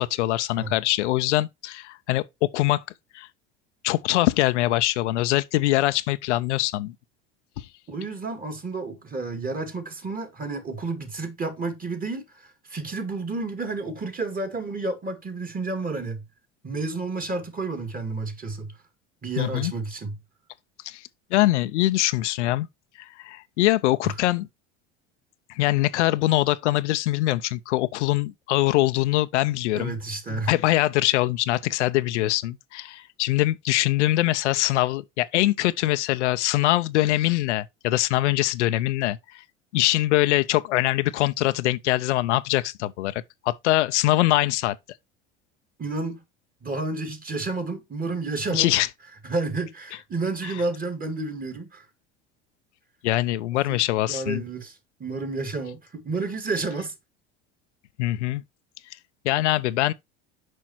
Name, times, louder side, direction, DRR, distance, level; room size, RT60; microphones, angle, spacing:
voice 1, 0.0-2.8 3.1-3.3 3.8-6.9 7.6-7.7 19.4-19.7 20.8-21.0 21.3-22.7 23.0-24.5 25.5-29.9 30.3-39.4 39.7-44.8 48.5-48.9 50.4-50.5 53.0-54.4 58.0-58.4 59.2-59.9, left 16 dB, 80° left, 0.6 m, -23 dB
voice 2, 7.9-16.2 16.6-18.7 19.2-20.2 24.0-24.1 29.8-30.5 45.8-46.2 46.6-48.7 49.2-51.9 53.7-53.8 54.1-56.9, right 3 dB, 25° right, 2.3 m, -31 dB
6.2 x 5.4 x 4.4 m
hypercardioid pair, 80°, 35 cm